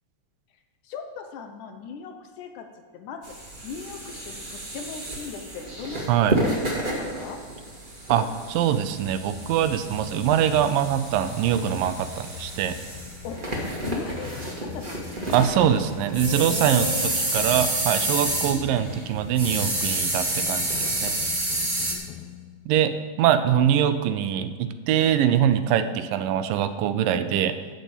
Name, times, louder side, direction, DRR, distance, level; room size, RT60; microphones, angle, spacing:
voice 1, 0.8-6.1 6.8-7.4 13.2-13.4 13.8-15.5 16.1-17.4 18.5-18.7 21.9-22.2, left 5 dB, 70° left, 5 dB, 2.2 m, -38 dB
sound 1, 3.2-21.9, right 1 dB, 30° right, 1.0 m, -30 dB
voice 2, 8.1-12.8 15.3-20.8 21.0-21.1 22.7-27.6, right 10 dB, 85° right, 10 dB, 2.4 m, -23 dB
sound 2, 9.1-23.0, left 9 dB, 90° left, 2.6 m, -42 dB
13.0 x 5.0 x 8.3 m, 1.6 s
omnidirectional pair, 3.9 m